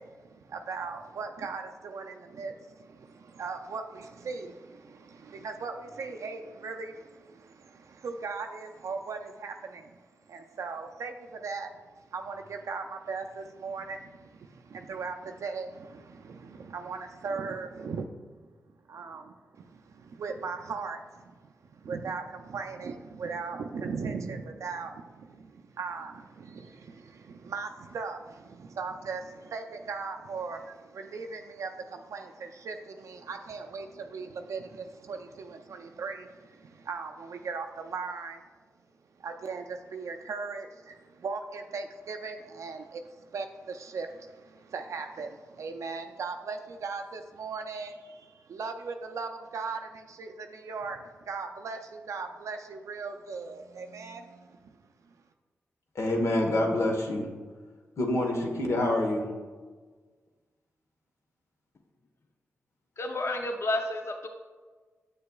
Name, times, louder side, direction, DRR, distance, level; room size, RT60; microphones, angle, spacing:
voice 1, 0.0-10.0 10.3-18.1 18.9-38.4 39.2-54.7, right 4 dB, 75° right, 4 dB, 0.4 m, -38 dB
voice 2, 55.9-57.3 58.0-59.3, left 1 dB, 70° left, 1 dB, 1.1 m, -26 dB
voice 3, 63.0-64.3, left 2 dB, 55° left, 5 dB, 0.6 m, -30 dB
7.0 x 6.5 x 2.3 m, 1.4 s
supercardioid pair, 45°, 5 cm